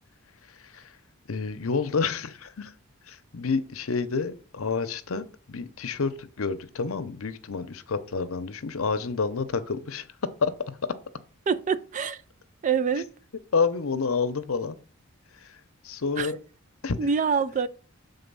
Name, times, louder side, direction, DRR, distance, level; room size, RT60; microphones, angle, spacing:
voice 1, 0.4-1.0 1.3-2.7 3.1-10.1 10.4-10.5 13.5-14.8 15.3-16.4 16.8-17.1, left 5 dB, 75° left, 0.7 m, -29 dB
voice 2, 11.5-12.2 12.6-13.1 16.2-16.3 17.0-17.7, right 6 dB, 35° right, 0.3 m, -25 dB
6.9 x 4.0 x 5.4 m
head